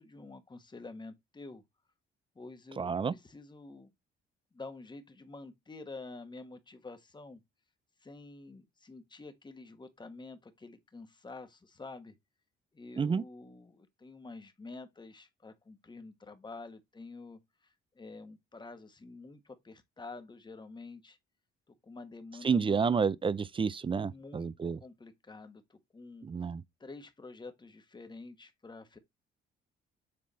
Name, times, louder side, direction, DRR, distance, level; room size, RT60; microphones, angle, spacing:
voice 1, 0.0-1.6 2.3-3.9 4.5-7.4 8.0-12.1 12.7-21.2 21.8-22.9 23.9-24.5 24.8-26.3 26.8-29.0, left 3 dB, 20° left, 1.3 m, -48 dB
voice 2, 2.8-3.1 13.0-13.2 22.4-24.8 26.2-26.6, right 5 dB, 25° right, 0.5 m, -30 dB
7.7 x 3.7 x 4.1 m
cardioid pair, 90°, 20 cm